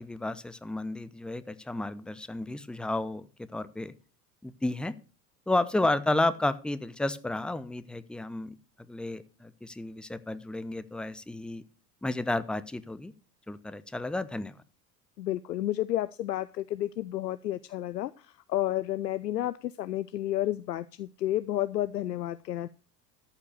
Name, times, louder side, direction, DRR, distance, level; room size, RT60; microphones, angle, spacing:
voice 1, 0.0-3.9 4.4-4.9 5.5-8.5 8.9-11.6 12.0-13.1 13.5-14.6, left 2 dB, ahead, 14 dB, 0.6 m, -32 dB
voice 2, 15.2-22.7, left 13 dB, 80° left, 15 dB, 0.6 m, -31 dB
13.0 x 5.8 x 6.6 m, 0.36 s
figure-of-eight pair, 75°, 49 cm